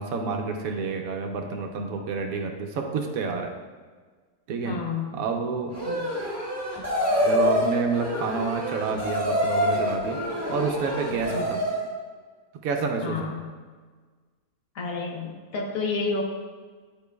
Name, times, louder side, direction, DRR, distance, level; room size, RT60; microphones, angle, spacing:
voice 1, 0.0-3.5 4.5-4.7 5.1-5.8 7.2-10.2 10.5-11.6 12.6-13.3, right 4 dB, 70° right, 3 dB, 1.0 m, -29 dB
voice 2, 4.6-5.2 5.8-6.1 11.3-11.4 13.0-13.5 14.7-16.2, left 4 dB, 65° left, -1 dB, 1.3 m, -30 dB
sound 1, 5.7-11.9, equal, 10° right, 1.5 m, -26 dB
9.2 x 5.0 x 2.3 m, 1.5 s
omnidirectional pair, 1.6 m